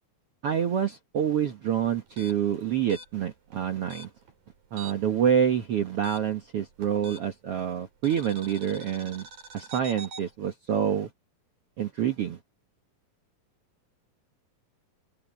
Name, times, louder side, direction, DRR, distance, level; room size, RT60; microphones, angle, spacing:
voice 1, 0.4-4.1 4.7-9.3 9.5-11.1 11.8-12.4, right 9 dB, 55° right, 1.8 m, -27 dB
sound 1, 2.1-5.2 5.4-7.5 8.0-10.3, right 2 dB, 70° right, 5.8 m, -45 dB
open air
omnidirectional pair, 4.0 m